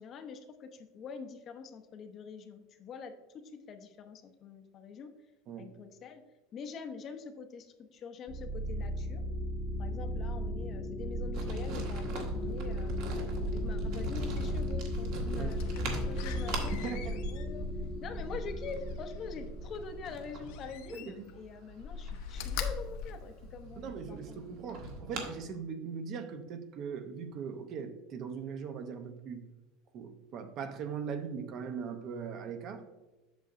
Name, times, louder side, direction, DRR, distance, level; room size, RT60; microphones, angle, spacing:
voice 1, 0.0-5.1 5.6-6.2 6.5-9.3 9.8-13.0 13.5-17.7 18.0-24.4 24.8-24.9, left 5 dB, 30° left, 7 dB, 0.6 m, -45 dB
sound 1, 8.3-20.5, equal, 10° right, 0.8 m, -35 dB
sound 2, 11.3-25.4, right 2 dB, 60° right, 1.6 m, -44 dB
Slam, 15.5-19.3 20.4-21.4 21.7-24.0 24.5-24.6, left 7 dB, 65° left, 0.8 m, -42 dB
voice 2, 16.8-17.2 20.9-21.3 23.8-29.4 29.9-32.8, right 6 dB, 40° right, 8 dB, 0.6 m, -40 dB
8.1 x 6.5 x 2.5 m, 1.1 s
cardioid pair, 160°, 0 cm